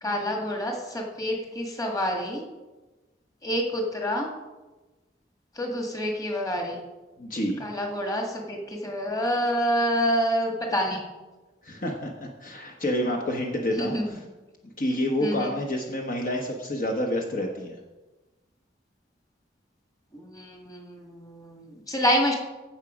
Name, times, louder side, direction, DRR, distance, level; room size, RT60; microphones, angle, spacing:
voice 1, 0.0-2.4 3.4-4.3 5.6-6.8 7.6-11.0 13.8-14.0 15.2-15.5 20.1-22.4, equal, 20° left, 1 dB, 1.8 m, -27 dB
voice 2, 7.2-7.6 11.6-14.2 14.6-17.8, left 1 dB, 50° left, 1 dB, 1.1 m, -28 dB
15.5 x 6.0 x 5.1 m, 1.2 s
head